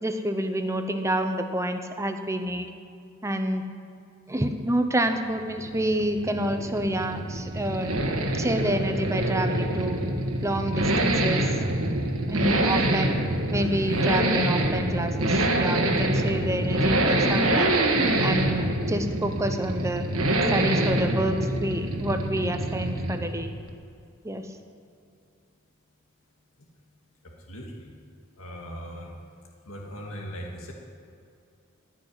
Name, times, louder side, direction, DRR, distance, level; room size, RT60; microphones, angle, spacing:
voice 1, 0.0-2.7 3.2-3.7 4.3-7.9 8.3-10.0 10.4-11.5 12.3-13.1 13.5-17.7 18.2-20.0 20.5-23.5 24.2-24.5, right 1 dB, 15° right, 7 dB, 0.8 m, -28 dB
Accelerating revving vroom, 5.2-23.4 23.7-23.8, right 1 dB, 85° right, 1.6 m, -25 dB
voice 2, 13.6-14.0 26.6-26.7 27.2-27.9 28.4-29.1 29.7-30.7, equal, 90° left, 0 dB, 1.9 m, -40 dB
15.0 x 6.3 x 9.9 m, 2.5 s
head